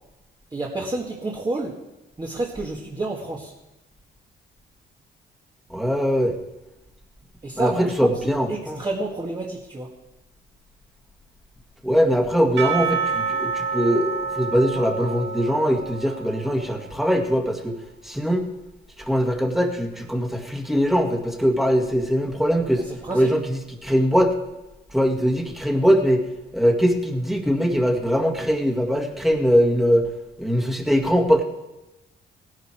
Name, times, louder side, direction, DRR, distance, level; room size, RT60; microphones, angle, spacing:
voice 1, 0.5-1.8 2.2-3.5 7.4-8.1 8.5-9.9 22.9-23.3, right 2 dB, 20° right, -2 dB, 1.9 m, -29 dB
voice 2, 5.7-6.3 7.6-8.8 11.8-17.8 18.0-18.5 19.1-22.8 23.1-24.4 24.9-26.2 26.5-30.1 30.4-31.4, equal, ahead, 2 dB, 1.9 m, -21 dB
Percussion / Church bell, 12.6-17.0, right 5 dB, 70° right, 1.8 m, -28 dB
17.0 x 10.5 x 4.5 m, 1.0 s
cardioid pair, 90°, 20 cm